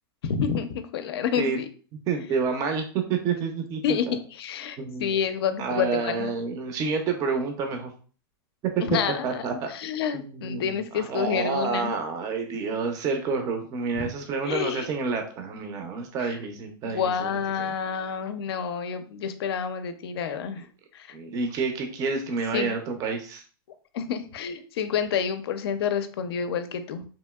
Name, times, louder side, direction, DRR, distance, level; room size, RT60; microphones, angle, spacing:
voice 1, 0.2-1.7 3.8-6.3 8.8-9.4 9.7-11.9 13.9-14.1 14.4-14.9 16.3-16.4 16.8-20.6 20.9-21.2 22.5-22.8 23.9-27.0, left 7 dB, 80° left, 10 dB, 0.4 m, -29 dB
voice 2, 2.1-3.8 4.1-4.2 4.8-5.1 5.6-7.9 8.7-8.8 9.2-9.7 10.1-10.7 10.9-17.3 17.6-17.7 21.1-23.4, right 5 dB, 25° right, 5 dB, 0.4 m, -29 dB
2.9 x 2.7 x 2.2 m, 0.41 s
supercardioid pair, 145°, 13 cm